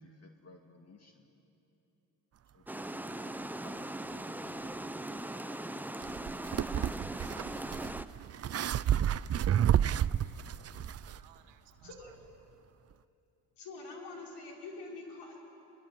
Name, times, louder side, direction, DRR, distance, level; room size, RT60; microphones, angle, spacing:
voice 1, 0.0-1.3 2.5-4.8, left 3 dB, 40° left, 3 dB, 2.1 m, -58 dB
Water, 2.7-8.1, right 1 dB, 5° right, 0.8 m, -40 dB
voice 2, 5.1-6.2 7.9-8.2 11.0-12.1, right 11 dB, 85° right, 6 dB, 1.6 m, -62 dB
sound 1, 6.0-11.2, right 10 dB, 35° right, 0.5 m, -31 dB
voice 3, 11.8-12.1 13.6-15.4, left 3 dB, 75° left, -1 dB, 5.5 m, -45 dB
24.0 x 21.5 x 9.4 m, 2.9 s
supercardioid pair, 70°, 41 cm